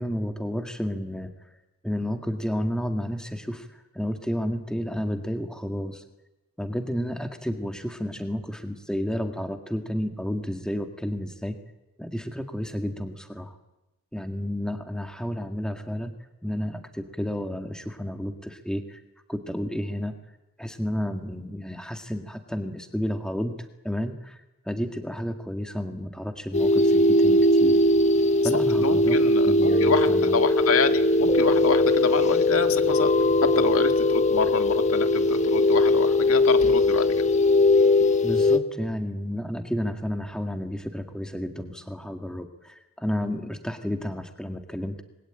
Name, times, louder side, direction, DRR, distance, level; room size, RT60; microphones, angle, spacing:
voice 1, 0.0-1.3 1.8-6.0 6.6-11.6 12.0-13.6 14.1-16.1 16.4-19.0 19.3-20.1 20.6-24.4 24.7-27.8 28.4-29.2 29.4-30.4 38.2-45.0, equal, 5° left, 6 dB, 1.9 m, -31 dB
sound 1, 26.5-38.6, left 2 dB, 30° left, 1.2 m, -20 dB
voice 2, 28.8-33.1 33.4-37.1, left 4 dB, 75° left, 8 dB, 1.9 m, -27 dB
29.0 x 21.5 x 9.0 m, 0.97 s
head